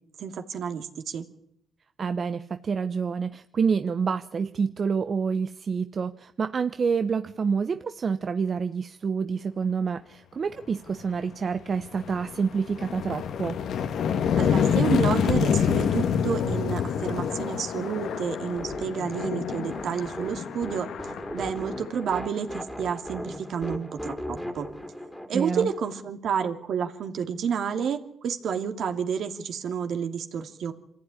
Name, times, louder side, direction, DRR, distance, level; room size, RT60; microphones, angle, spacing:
voice 1, 0.2-1.2 14.4-20.9 21.3-24.7 25.3-30.7, right 7 dB, 65° right, 6 dB, 2.6 m, -30 dB
voice 2, 2.0-13.6 25.3-25.7, right 5 dB, 45° right, 10 dB, 0.9 m, -28 dB
sound 1, 11.0-11.2 11.6-22.4, left 7 dB, 70° left, 1.6 m, -27 dB
sound 2, 18.6-26.0, equal, ahead, 2.8 m, -38 dB
25.5 x 15.0 x 9.9 m, 0.72 s
cardioid pair, 90°, 0 cm